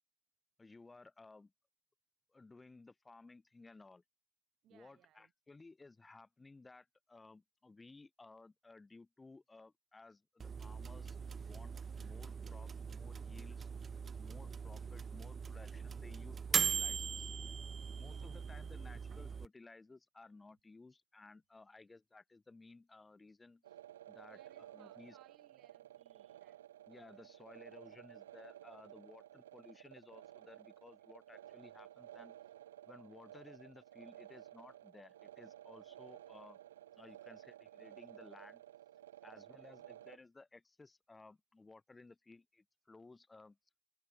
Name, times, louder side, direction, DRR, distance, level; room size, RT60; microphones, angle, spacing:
voice 1, 0.6-1.5 2.3-4.0 4.7-13.7 14.2-17.3 18.0-23.8 24.1-25.2 26.9-32.4 32.9-36.6 36.9-38.6 39.2-43.6, left 3 dB, 15° left, 1.2 m, -58 dB
voice 2, 4.6-5.3 18.0-18.5 24.1-26.7 39.5-39.7, right 13 dB, 40° right, 5.0 m, -67 dB
sound 1, 10.4-19.5, right 6 dB, 25° right, 0.5 m, -40 dB
sound 2, 23.6-40.2, right 12 dB, 75° right, 1.9 m, -55 dB
hypercardioid pair, 85°, 0 cm